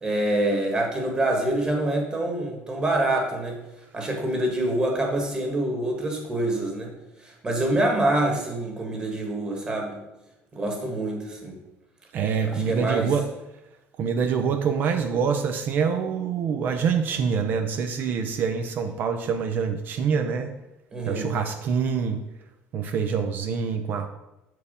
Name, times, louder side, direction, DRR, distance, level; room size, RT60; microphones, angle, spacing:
voice 1, 0.0-3.6 3.9-6.9 7.2-10.0 10.5-11.5 12.4-13.1 20.9-21.3, right 1 dB, 20° right, 1 dB, 1.5 m, -26 dB
voice 2, 12.1-13.3 14.0-20.5 21.1-22.2 22.7-24.1, right 6 dB, 45° right, 6 dB, 0.5 m, -25 dB
6.9 x 4.7 x 5.0 m, 0.93 s
cardioid pair, 155°, 4 cm